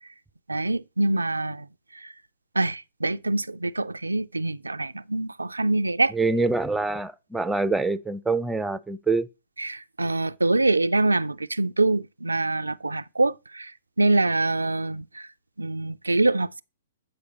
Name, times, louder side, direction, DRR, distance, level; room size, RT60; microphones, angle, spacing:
voice 1, 0.5-1.6 2.6-6.1 9.6-13.7 14.0-15.3 15.6-16.6, right 2 dB, 85° right, 0.3 m, -25 dB
voice 2, 6.1-9.3, right 3 dB, 5° right, 0.4 m, -25 dB
8.6 x 4.8 x 4.0 m
figure-of-eight pair, 115°, 0 cm